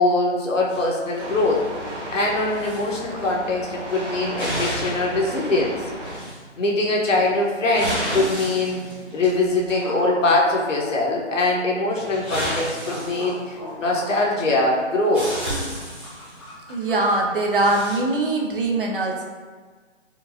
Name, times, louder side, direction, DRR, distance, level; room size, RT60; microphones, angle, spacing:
voice 1, 0.0-1.6 2.1-5.7 6.6-8.8 9.1-15.3, left 2 dB, 80° left, -2 dB, 1.0 m, -22 dB
sound 1, 0.7-2.0 2.4-3.0 3.2-3.5 4.0-5.1 5.4-5.5 6.0-6.5 7.2-9.9 11.9-13.9 14.7-14.8 15.1-16.5 17.4-18.0, equal, ahead, 0.8 m, -32 dB
sound 2, 1.2-6.2, right 1 dB, 75° right, 1.2 m, -34 dB
sound 3, 9.8-11.4 12.0-17.9, equal, 25° left, 0.5 m, -40 dB
voice 2, 16.7-19.3, right 2 dB, 45° right, 0 dB, 0.5 m, -22 dB
4.4 x 2.4 x 2.6 m, 1.5 s
hypercardioid pair, 165°, 37 cm